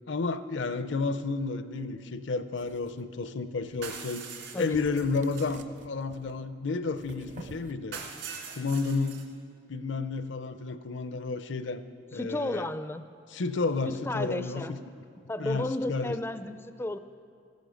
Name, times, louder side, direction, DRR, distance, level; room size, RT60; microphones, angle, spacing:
voice 1, 0.1-4.2 4.6-8.0 8.6-9.2 9.7-11.8 12.1-12.7 13.3-14.6 15.4-16.2, left 4 dB, 65° left, 11 dB, 0.6 m, -31 dB
sound 1, 2.6-3.0 3.7-4.1 4.4-4.5 4.7-6.4 7.0-7.7, right 2 dB, 40° right, 0.6 m, -49 dB
sound 2, 3.8-5.6 7.9-9.2, right 6 dB, 65° right, 1.9 m, -42 dB
voice 2, 12.1-13.0 13.9-14.8 15.3-17.0, left 1 dB, 10° left, 11 dB, 0.4 m, -33 dB
14.5 x 10.5 x 6.4 m, 2.4 s
head